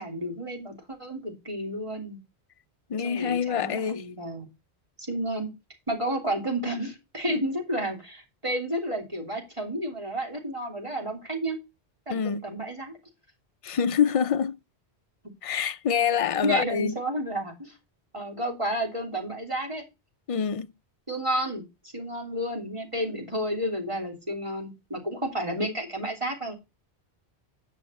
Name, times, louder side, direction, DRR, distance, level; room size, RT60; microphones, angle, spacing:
voice 1, 0.0-2.2 3.0-4.5 5.0-5.5 5.9-11.6 12.1-12.9 16.4-17.8 18.1-19.8 21.1-21.6 21.9-26.5, right 1 dB, 30° right, 3.2 m, -31 dB
voice 2, 2.9-4.0 12.1-12.4 13.6-14.6 15.4-16.9 20.3-20.7, left 7 dB, 40° left, 0.5 m, -26 dB
10.0 x 5.8 x 4.2 m
omnidirectional pair, 1.1 m